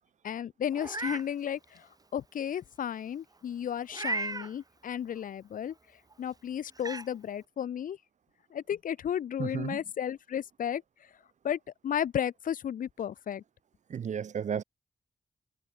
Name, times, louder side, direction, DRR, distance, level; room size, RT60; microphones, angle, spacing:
voice 1, 0.2-5.7 6.2-8.0 8.5-10.8 11.4-13.4, left 9 dB, 70° left, 0.5 m, -34 dB
Meow, 0.7-1.3 1.8-1.9 3.9-4.5 6.1-6.2 6.8-7.1, right 3 dB, 25° right, 1.1 m, -34 dB
voice 2, 9.4-9.8 13.9-14.6, right 7 dB, 55° right, 0.4 m, -33 dB
cardioid pair, 55°, 14 cm